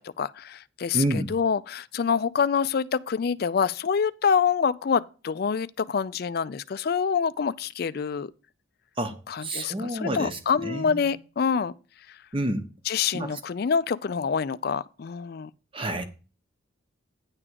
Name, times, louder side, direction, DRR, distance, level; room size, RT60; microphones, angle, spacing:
voice 1, 0.0-8.3 9.3-11.7 12.9-15.5, left 6 dB, 50° left, 0.3 m, -26 dB
voice 2, 0.9-1.3 9.0-11.1 12.3-12.7 13.1-13.3 15.7-16.0, right 1 dB, 25° right, 0.8 m, -29 dB
9.8 x 3.6 x 6.7 m
head